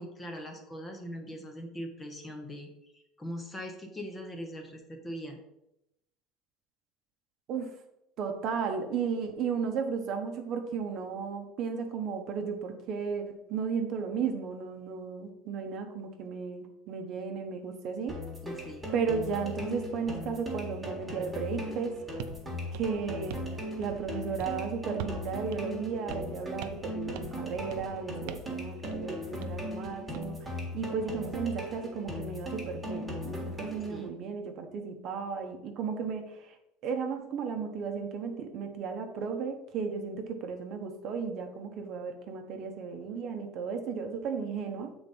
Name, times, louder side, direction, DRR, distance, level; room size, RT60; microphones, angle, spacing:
voice 1, 0.0-5.4 18.4-18.9 33.9-34.1, equal, 10° left, 4 dB, 0.8 m, -41 dB
voice 2, 8.2-18.2 18.9-22.0 22.7-23.4 23.8-36.5 36.8-44.9, right 6 dB, 40° right, 5 dB, 0.9 m, -34 dB
sound 1, 18.1-34.1, left 1 dB, 5° right, 1.5 m, -38 dB
sound 2, 22.2-22.4 22.7-23.5 23.8-24.1 24.4-24.6 25.0-25.3 25.5-25.6 26.1-26.3 26.6-26.9 27.2-27.4 27.7-27.9 28.3-28.5 28.8-29.0 29.4-30.3, right 10 dB, 70° right, 0.5 m, -42 dB
7.6 x 4.0 x 5.3 m, 0.85 s
cardioid pair, 175°, 0 cm